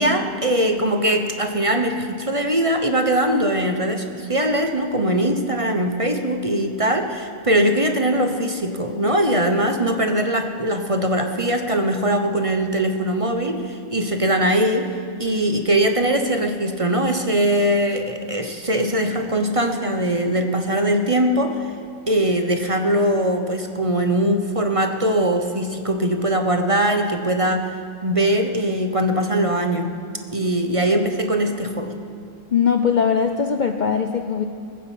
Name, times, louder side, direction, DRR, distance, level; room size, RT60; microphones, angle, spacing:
voice 1, 0.0-21.7 22.1-29.9 30.3-31.9, right 1 dB, 25° right, 5 dB, 1.0 m, -21 dB
voice 2, 32.5-34.4, left 6 dB, 45° left, 6 dB, 0.6 m, -20 dB
20.0 x 9.5 x 7.5 m, 2.2 s
omnidirectional pair, 1.5 m